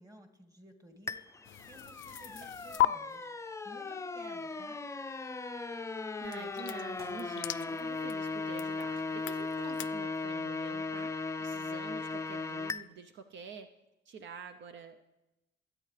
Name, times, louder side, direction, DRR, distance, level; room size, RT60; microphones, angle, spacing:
voice 1, 0.0-4.9, equal, 15° right, 5 dB, 2.0 m, -55 dB
sound 1, 1.1-12.8, left 3 dB, 15° left, 0.5 m, -37 dB
sound 2, 1.4-2.9 6.2-9.9, left 14 dB, 80° left, 0.4 m, -37 dB
sound 3, 2.3-9.8, equal, 50° right, 5.6 m, -62 dB
voice 2, 6.2-11.1 11.4-13.7 14.0-15.0, right 5 dB, 70° right, 8 dB, 0.7 m, -48 dB
22.5 x 8.8 x 3.3 m, 0.96 s
cardioid pair, 90°, 20 cm